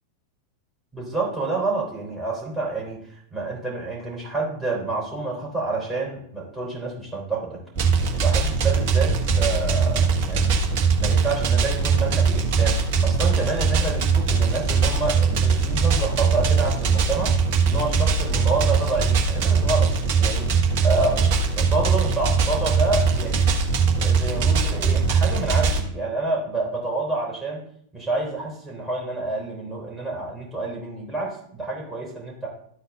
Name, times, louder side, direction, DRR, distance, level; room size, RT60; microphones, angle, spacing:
voice 1, 0.9-7.6 8.2-10.6 11.0-17.3 17.6-19.9 20.2-23.5 24.0-27.7 27.9-32.5, right 3 dB, ahead, -5 dB, 3.5 m, -28 dB
sound 1, 7.8-25.8, right 5 dB, 50° right, 1.1 m, -21 dB
12.0 x 4.2 x 3.6 m, 0.64 s
figure-of-eight pair, 90°, 0 cm